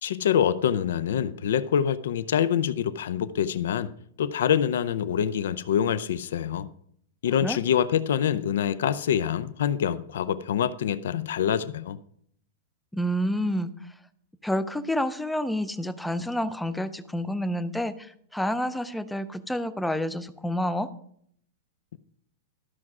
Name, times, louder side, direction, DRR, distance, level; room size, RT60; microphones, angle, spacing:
voice 1, 0.0-3.9 4.2-6.7 7.2-12.0, left 9 dB, 80° left, 0.6 m, -25 dB
voice 2, 12.9-13.9 14.4-20.9, equal, 5° left, 0.4 m, -29 dB
13.0 x 6.2 x 4.8 m
supercardioid pair, 165°, 0 cm